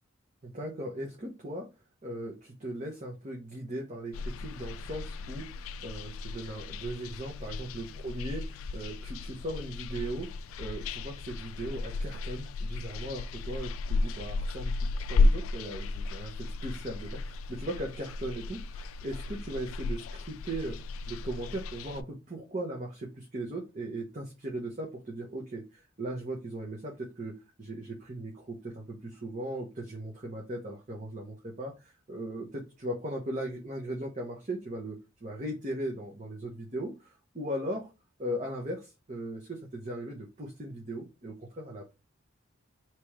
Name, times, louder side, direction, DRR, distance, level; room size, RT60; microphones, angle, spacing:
voice 1, 0.4-1.7 2.0-10.3 10.6-20.8 21.1-37.9 38.2-41.9, right 1 dB, 35° right, -1 dB, 0.9 m, -38 dB
sound 1, 4.1-22.0, left 3 dB, 80° left, 0.3 m, -33 dB
3.4 x 3.0 x 4.6 m, 0.28 s
head